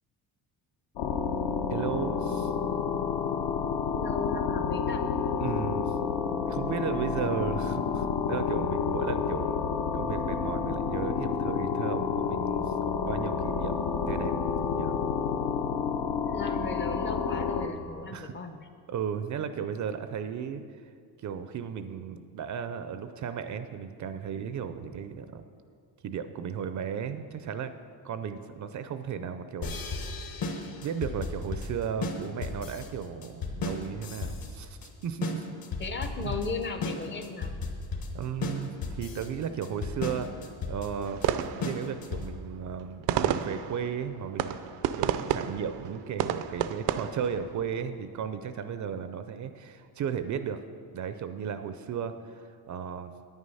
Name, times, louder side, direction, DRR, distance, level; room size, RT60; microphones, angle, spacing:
sound 1, 1.0-17.7, left 6 dB, 70° left, 1.0 m, -29 dB
voice 1, 1.7-2.5 5.4-5.9 6.2-9.6 9.9-13.8 14.1-14.3 14.7-15.0 18.1-18.4 18.9-20.6 21.2-25.4 26.0-27.7 28.0-35.4 36.2-36.4 38.1-41.2 41.6-44.6 44.9-50.6 50.9-53.1, right 7 dB, 45° right, 10 dB, 0.4 m, -35 dB
voice 2, 3.9-5.0 16.2-18.7 35.8-37.5, left 4 dB, 25° left, 7 dB, 0.6 m, -36 dB
sound 2, 29.6-42.5, left 3 dB, 55° left, 1.2 m, -35 dB
sound 3, 41.1-47.8, right 10 dB, 85° right, 0.6 m, -32 dB
9.7 x 9.4 x 5.5 m, 2.2 s
cardioid pair, 170°, 42 cm